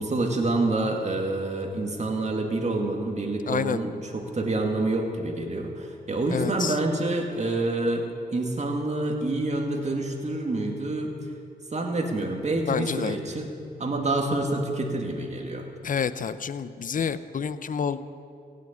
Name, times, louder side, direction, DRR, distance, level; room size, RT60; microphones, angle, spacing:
voice 1, 0.0-8.1 8.3-11.1 11.7-13.5 13.8-15.7, right 2 dB, 40° right, 2 dB, 2.1 m, -27 dB
voice 2, 3.5-3.8 6.3-6.8 12.7-13.2 15.8-18.0, left 7 dB, 50° left, 14 dB, 0.6 m, -28 dB
16.0 x 6.6 x 8.7 m, 2.6 s
cardioid pair, 60°, 18 cm